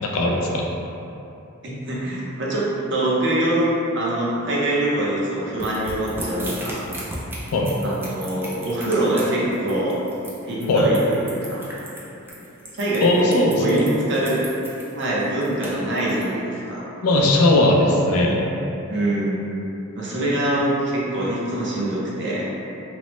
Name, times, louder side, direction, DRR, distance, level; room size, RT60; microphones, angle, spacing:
voice 1, 0.0-0.7 7.5-7.8 10.7-10.9 13.0-13.9 17.0-18.5, left 1 dB, 80° left, -1 dB, 0.4 m, -18 dB
voice 2, 1.6-3.7 3.9-6.8 7.8-10.0 10.4-11.6 12.8-14.4 14.9-16.9 18.9-19.4 20.0-22.5, right 1 dB, 55° right, -6 dB, 0.6 m, -24 dB
sound 1, 5.6-16.2, right 1 dB, 10° right, 0.3 m, -35 dB
3.0 x 2.0 x 3.0 m, 2.9 s
head